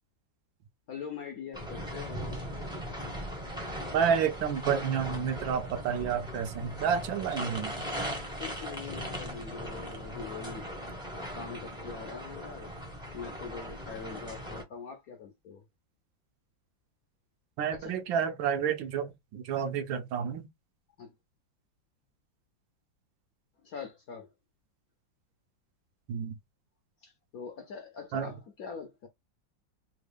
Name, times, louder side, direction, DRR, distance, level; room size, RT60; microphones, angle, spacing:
voice 1, 0.9-2.4 8.4-12.7 13.1-15.6 17.7-18.0 21.0-21.1 23.6-24.3 27.0-29.1, left 6 dB, 65° left, 0.9 m, -43 dB
sound 1, 1.5-14.6, equal, 5° right, 0.5 m, -39 dB
voice 2, 3.9-7.7 17.6-20.5 26.1-26.3 28.1-28.3, right 7 dB, 75° right, 1.4 m, -30 dB
3.6 x 2.2 x 3.3 m
omnidirectional pair, 2.1 m